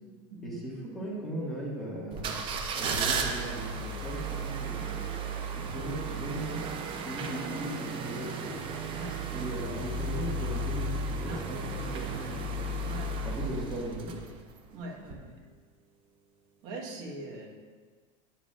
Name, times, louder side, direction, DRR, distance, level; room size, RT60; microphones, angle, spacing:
voice 1, 0.4-2.4 2.7-5.0 5.5-6.6 7.0-8.6 9.3-12.5 13.2-14.2, equal, ahead, -7 dB, 1.7 m, -38 dB
sound 1, 2.1-14.6 15.0-15.2, right 3 dB, 30° right, 0.6 m, -34 dB
voice 2, 14.7-15.3 16.6-17.5, right 2 dB, 50° right, -1 dB, 1.4 m, -41 dB
9.2 x 7.3 x 2.4 m, 1.5 s
supercardioid pair, 155°, 17 cm